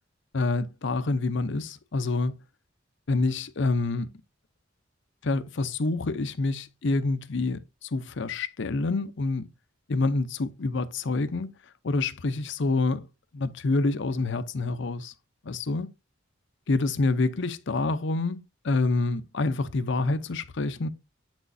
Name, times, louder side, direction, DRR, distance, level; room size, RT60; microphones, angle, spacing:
voice 1, 0.3-2.4 3.1-4.1 5.2-9.5 9.9-11.5 11.8-13.1 13.3-15.1 15.4-15.9 16.7-20.9, left 3 dB, 65° left, 0.6 m, -27 dB
8.0 x 6.2 x 2.6 m
head